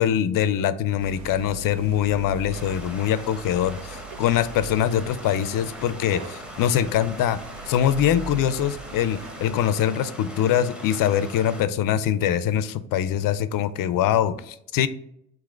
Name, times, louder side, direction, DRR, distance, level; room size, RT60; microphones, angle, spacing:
voice 1, 0.0-7.4 7.7-14.9, left 10 dB, 45° left, 15 dB, 0.4 m, -23 dB
sound 1, 1.0-9.5, right 5 dB, 70° right, 0.8 m, -41 dB
Stream, 2.5-11.6, left 1 dB, ahead, 0.7 m, -41 dB
3.8 x 2.9 x 4.4 m, 0.76 s
hypercardioid pair, 60°, 49 cm